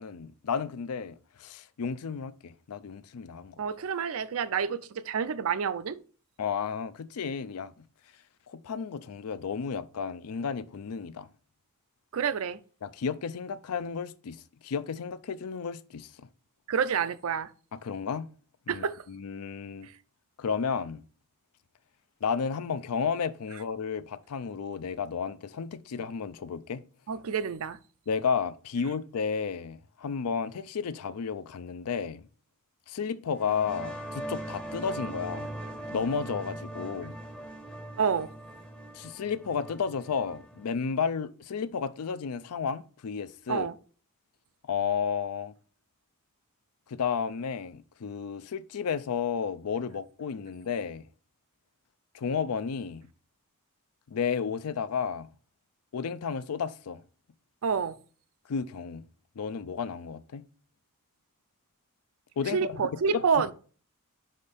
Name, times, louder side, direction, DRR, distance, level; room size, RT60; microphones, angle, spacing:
voice 1, 0.0-3.6 6.4-7.7 8.5-11.3 12.8-16.3 17.7-18.3 18.7-19.9 20.4-21.0 22.2-26.8 28.1-32.3 32.9-35.5 35.9-37.2 38.9-43.7 44.6-45.5 46.9-51.1 52.1-53.1 54.1-55.3 55.9-57.0 58.5-59.0 59.4-60.4 62.4-62.7 63.1-63.2, left 6 dB, 80° left, 0.5 m, -32 dB
voice 2, 3.6-6.0 12.1-12.6 16.7-17.5 18.7-19.0 19.8-19.9 27.1-27.8 38.0-38.3 43.5-43.7 57.6-58.0 62.5-63.5, right 6 dB, 65° right, 0.4 m, -28 dB
sound 1, 33.3-40.7, right 1 dB, 5° left, 0.6 m, -40 dB
5.4 x 5.1 x 4.0 m
head